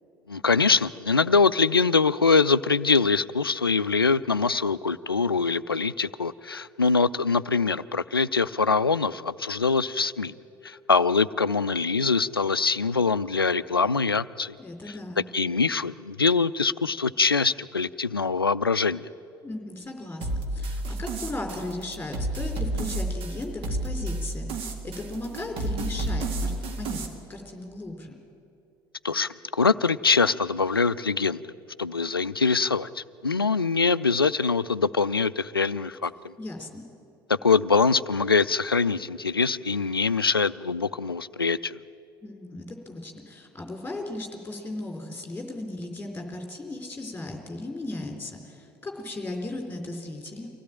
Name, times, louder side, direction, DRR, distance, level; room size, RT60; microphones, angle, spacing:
voice 1, 0.3-10.3 10.6-14.6 15.3-19.1 29.0-31.5 31.8-36.1 37.4-41.8, left 4 dB, 85° left, 17 dB, 0.4 m, -23 dB
voice 2, 14.6-15.2 19.4-28.1 36.4-36.8 42.2-50.5, left 2 dB, 15° left, 3 dB, 4.2 m, -36 dB
sound 1, 20.2-27.1, right 2 dB, 50° right, 2.2 m, -31 dB
24.0 x 16.5 x 8.9 m, 2.8 s
figure-of-eight pair, 65°, 12 cm